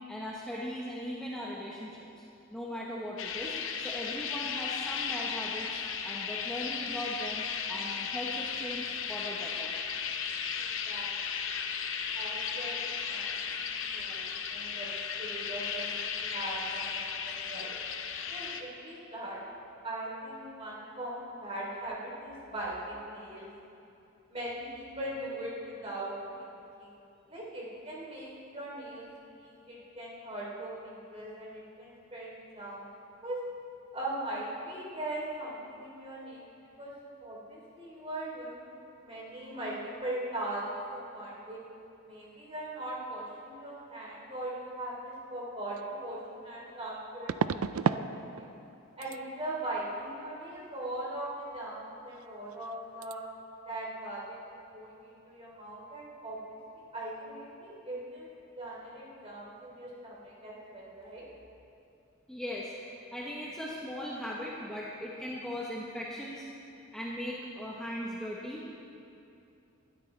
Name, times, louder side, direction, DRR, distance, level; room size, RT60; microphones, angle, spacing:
voice 1, 0.1-2.1 2.5-9.7 62.3-62.7 63.1-66.4 66.9-68.8, equal, 5° left, -5 dB, 1.0 m, -39 dB
sound 1, 3.2-18.6, left 6 dB, 65° left, 0.8 m, -35 dB
voice 2, 10.6-11.1 12.1-13.6 13.9-14.9 15.2-17.8 18.3-19.4 19.8-23.5 24.3-26.5 26.8-27.0 27.3-32.9 33.2-33.4 33.9-36.5 36.8-36.9 37.2-38.7 39.0-41.6 42.0-48.5 49.0-53.2 53.6-56.6 56.9-58.3 58.6-61.3, right 1 dB, 30° right, -5 dB, 3.2 m, -40 dB
sound 2, 45.7-45.8 47.3-48.1 48.4-48.7 49.0-49.2 52.1-52.3 52.5-52.7 53.0-53.1, right 6 dB, 90° right, 0.4 m, -31 dB
19.5 x 13.0 x 3.3 m, 2.8 s
head